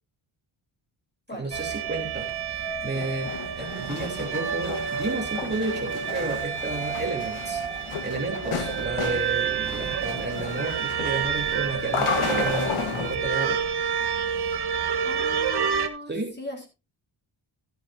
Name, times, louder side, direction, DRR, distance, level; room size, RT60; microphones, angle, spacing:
voice 1, 1.3-13.6 16.1-16.3, right 2 dB, 20° right, 0 dB, 3.4 m, -32 dB
sound 1, 1.5-15.9, right 7 dB, 50° right, 1.2 m, -29 dB
sound 2, 2.9-13.1, left 5 dB, 85° left, 1.6 m, -33 dB
voice 2, 15.0-16.7, equal, 20° left, 1 dB, 4.1 m, -37 dB
13.0 x 11.5 x 2.7 m, 0.26 s
wide cardioid pair, 100°, 48 cm